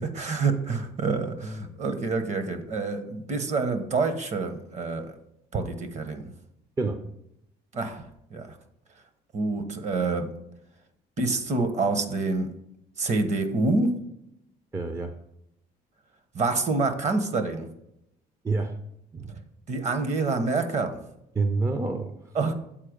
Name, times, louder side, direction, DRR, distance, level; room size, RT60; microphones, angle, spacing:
voice 1, 0.0-5.1 5.5-6.3 7.7-8.0 8.3-8.5 9.3-10.3 11.2-12.5 13.0-13.9 16.3-17.7 19.7-21.0 22.3-22.5, right 3 dB, 45° right, 9 dB, 1.0 m, -27 dB
voice 2, 14.7-15.2 18.4-18.8 19.1-19.4 21.3-22.2, right 3 dB, 15° right, 8 dB, 0.5 m, -28 dB
7.5 x 4.3 x 5.1 m, 0.82 s
cardioid pair, 110°, 17 cm